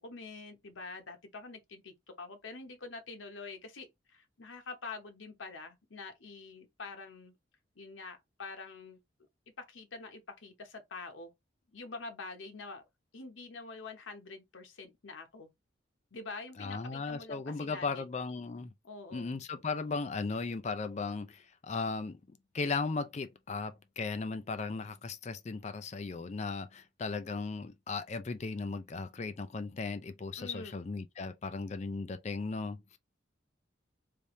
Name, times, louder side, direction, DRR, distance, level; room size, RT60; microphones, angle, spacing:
voice 1, 0.0-7.3 7.8-9.0 9.7-11.3 11.7-12.9 13.1-15.5 16.1-18.0 18.8-19.3 30.4-30.8, left 3 dB, 90° left, 1.0 m, -46 dB
voice 2, 16.6-18.7 19.1-22.2 22.5-33.0, left 4 dB, 35° left, 0.4 m, -36 dB
3.4 x 2.7 x 3.1 m
head